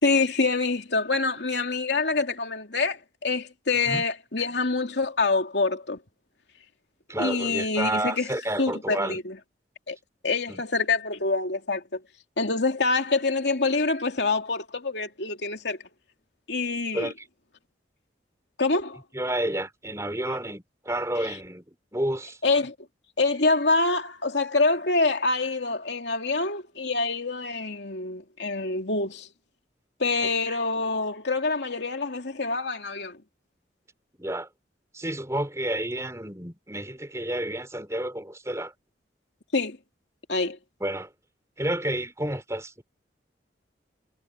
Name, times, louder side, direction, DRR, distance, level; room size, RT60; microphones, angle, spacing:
voice 1, 0.0-6.0 7.2-8.3 8.6-9.4 9.9-10.0 10.2-12.0 12.4-15.8 16.5-17.1 18.6-19.0 22.4-22.7 23.2-29.3 30.0-33.2 39.5-39.8 40.3-40.6, left 3 dB, 70° left, 2.7 m, -26 dB
voice 2, 7.1-9.2 10.5-10.6 16.9-17.1 19.1-21.6 21.9-22.4 30.2-30.6 34.2-34.5 34.9-38.7 40.8-41.1 41.6-42.8, right 1 dB, 15° right, 4.9 m, -30 dB
head